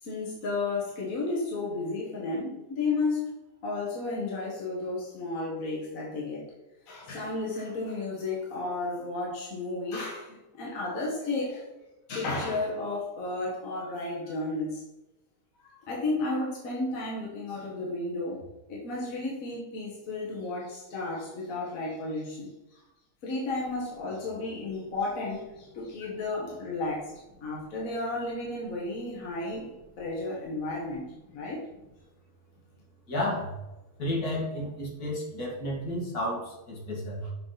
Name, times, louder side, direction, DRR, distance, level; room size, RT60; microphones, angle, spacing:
voice 1, 0.0-3.3 3.6-6.5 6.9-11.7 12.1-14.8 15.6-22.8 23.2-27.1 27.4-29.7 30.0-31.1 31.3-31.6, left 2 dB, 65° left, -4 dB, 1.6 m, -33 dB
voice 2, 33.1-33.6 34.0-37.3, left 1 dB, 80° left, -4 dB, 2.3 m, -32 dB
6.3 x 4.7 x 3.9 m, 0.99 s
omnidirectional pair, 1.6 m